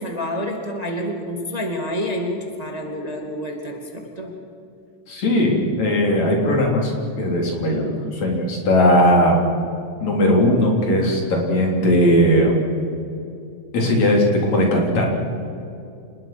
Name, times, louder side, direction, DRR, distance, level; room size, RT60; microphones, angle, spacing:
voice 1, 0.0-3.8 4.2-4.4, equal, 15° right, 2 dB, 2.2 m, -28 dB
voice 2, 5.1-6.9 7.2-9.4 10.0-12.5 13.7-15.1, equal, 65° left, 0 dB, 5.0 m, -18 dB
28.5 x 20.0 x 6.1 m, 2.5 s
omnidirectional pair, 3.3 m